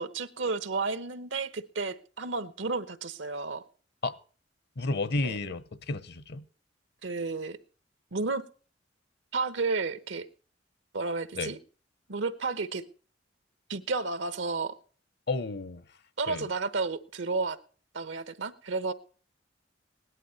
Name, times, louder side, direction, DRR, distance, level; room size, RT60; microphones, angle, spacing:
voice 1, 0.0-3.6 5.2-5.4 7.0-7.6 8.1-8.4 9.3-10.3 10.9-11.6 12.1-12.8 13.7-14.8 16.2-17.6 17.9-18.9, right 3 dB, 85° right, 1.0 m, -32 dB
voice 2, 4.8-6.4 11.4-11.5 15.3-15.8 16.3-16.5, left 3 dB, 60° left, 0.8 m, -32 dB
17.5 x 11.0 x 4.1 m
head